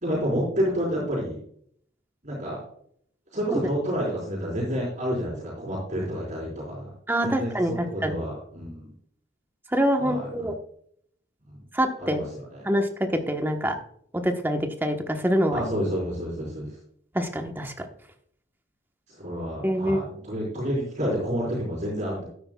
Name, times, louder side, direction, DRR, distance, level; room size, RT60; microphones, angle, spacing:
voice 1, 0.0-1.4 2.2-2.6 3.3-6.9 7.2-8.9 10.0-10.5 11.5-11.6 12.0-12.6 15.5-16.8 19.1-22.3, equal, 40° right, -5 dB, 4.3 m, -29 dB
voice 2, 7.1-8.1 9.7-10.5 11.7-12.2 12.6-12.9 13.3-13.7 14.1-15.6 17.1-17.9 19.6-20.0, equal, 10° right, 4 dB, 1.1 m, -25 dB
12.5 x 9.7 x 2.3 m, 0.65 s
head